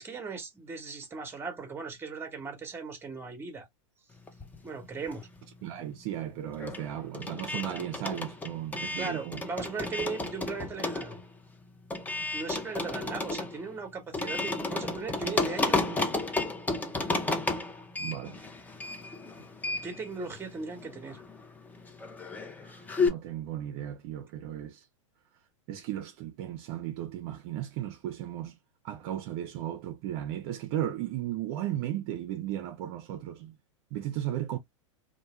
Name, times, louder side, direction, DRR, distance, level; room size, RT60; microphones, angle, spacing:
voice 1, 0.0-3.7 4.6-5.3 9.0-11.2 12.3-16.1 19.8-21.2, right 4 dB, 15° right, 0.9 m, -38 dB
sound 1, 4.3-5.5 5.8-23.1, left 3 dB, 10° left, 0.5 m, -33 dB
voice 2, 5.6-9.4 18.0-18.4 22.6-24.8 25.7-28.6 28.8-33.5 33.9-34.6, right 12 dB, 50° right, 0.4 m, -35 dB
2.2 x 2.1 x 3.0 m
hypercardioid pair, 105°, 16 cm